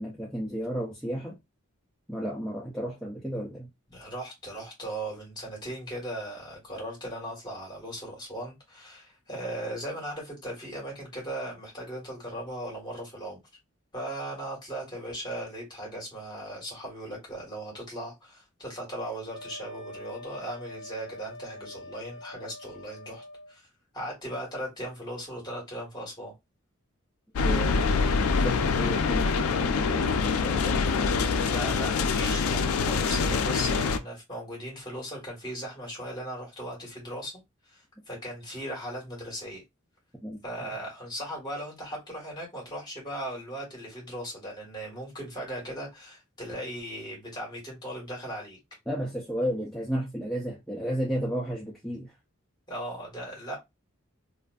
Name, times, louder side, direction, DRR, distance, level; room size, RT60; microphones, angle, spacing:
voice 1, 0.0-1.4 2.1-3.7 27.5-27.7 28.4-31.1 40.2-40.7 48.9-52.1, equal, ahead, 0.5 m, -33 dB
voice 2, 3.9-13.4 13.9-23.7 23.9-26.3 31.4-37.4 37.7-39.6 40.4-48.6 52.7-53.6, right 1 dB, 20° left, 1.3 m, -38 dB
Wind instrument woodwind instrument, 19.3-23.5, left 1 dB, 30° right, 1.3 m, -44 dB
sound 1, 27.4-34.0, left 5 dB, 85° left, 0.4 m, -25 dB
2.5 x 2.5 x 2.3 m
head